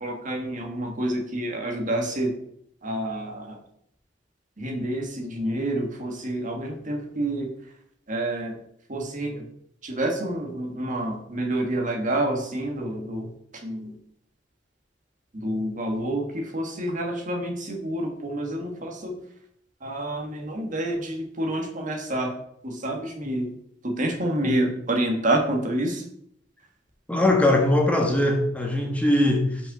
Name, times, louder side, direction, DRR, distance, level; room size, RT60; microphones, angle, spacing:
voice 1, 0.0-2.3 2.8-3.6 4.6-7.5 8.1-8.6 8.9-9.4 9.8-13.9 15.3-19.2 19.8-22.3 22.6-23.5 23.8-26.0, right 1 dB, 45° right, 3 dB, 1.5 m, -28 dB
voice 2, 27.1-29.6, left 1 dB, 10° left, 1 dB, 1.2 m, -21 dB
5.5 x 5.5 x 6.6 m, 0.69 s
head